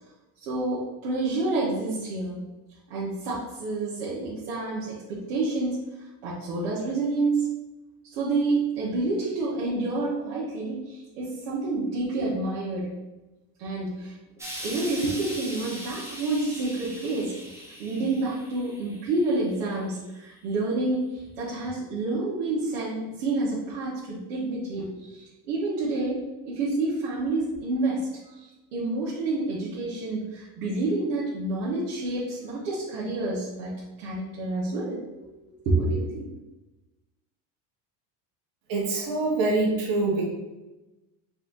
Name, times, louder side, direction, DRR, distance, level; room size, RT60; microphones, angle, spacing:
voice 1, 0.4-2.4 2.9-7.5 8.1-12.9 13.6-14.2 14.6-35.3 35.6-36.3, right 2 dB, 80° right, -8 dB, 1.2 m, -29 dB
Explosion, 14.4-19.7 20.5-20.6, equal, 5° right, 0.5 m, -40 dB
voice 2, 38.7-40.2, right 2 dB, 50° right, -3 dB, 1.5 m, -25 dB
4.2 x 2.6 x 3.8 m, 1.1 s
supercardioid pair, 135°, 45 cm